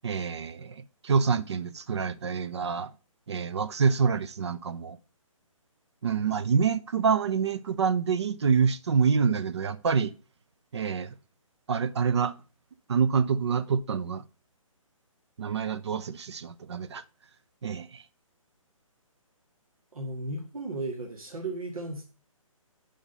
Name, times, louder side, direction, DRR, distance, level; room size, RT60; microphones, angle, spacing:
voice 1, 0.0-0.7 1.0-2.9 3.3-5.0 6.0-10.1 10.7-11.1 11.7-12.3 12.9-14.2 15.4-17.0 17.6-18.0, right 6 dB, 50° right, 0.5 m, -26 dB
voice 2, 19.9-22.0, right 2 dB, 85° right, 1.8 m, -35 dB
7.0 x 5.1 x 5.4 m
hypercardioid pair, 170°, 18 cm